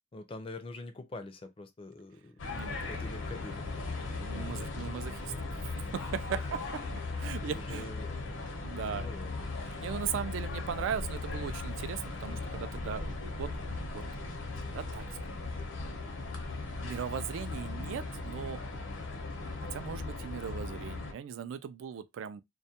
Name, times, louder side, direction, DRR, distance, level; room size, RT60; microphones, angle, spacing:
voice 1, 0.1-2.4 2.6-3.6 4.3-4.6 5.2-5.7 6.5-6.6 7.4-8.3 8.9-9.6 17.5-18.0, left 2 dB, 30° left, 0.4 m, -45 dB
sound 1, 2.4-21.1, left 3 dB, 80° left, 0.7 m, -38 dB
voice 2, 2.5-2.9 4.0-5.3 5.8-6.6 7.2-7.9 8.6-9.1 9.8-14.0 14.6-15.2 16.8-18.6 19.7-22.4, right 7 dB, 85° right, 0.3 m, -38 dB
2.2 x 2.1 x 2.7 m
head